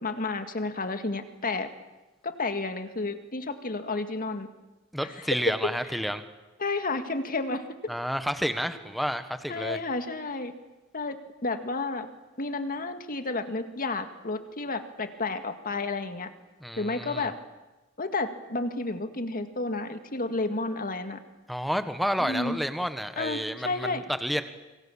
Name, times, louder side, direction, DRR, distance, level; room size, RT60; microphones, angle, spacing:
voice 1, 0.0-1.7 2.2-4.5 5.0-5.1 5.5-6.0 6.6-7.9 9.5-10.5 10.9-11.2 11.4-12.1 12.4-16.3 16.8-17.4 18.0-21.2 22.2-22.6 23.2-24.0, left 3 dB, 40° left, 8 dB, 2.0 m, -31 dB
voice 2, 4.9-6.2 7.9-9.8 16.6-17.3 21.5-24.4, equal, ahead, 10 dB, 1.4 m, -30 dB
26.0 x 25.0 x 7.3 m, 1.1 s
head